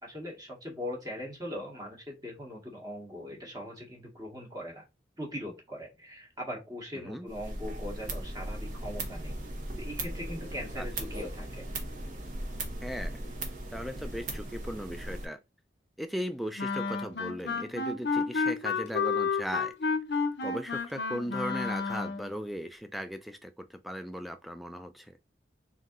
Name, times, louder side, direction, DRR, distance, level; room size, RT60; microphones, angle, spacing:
voice 1, 0.0-4.8 5.2-9.4 9.8-11.6, equal, 20° right, 1.3 m, -40 dB
voice 2, 6.9-7.3 10.8-10.9 12.8-13.2 13.7-15.4 16.0-25.2, equal, ahead, 0.4 m, -38 dB
sound 1, 7.3-15.3, right 1 dB, 45° right, 1.0 m, -38 dB
Wind instrument woodwind instrument, 16.6-22.3, left 4 dB, 65° left, 0.6 m, -31 dB
3.8 x 2.7 x 3.7 m
head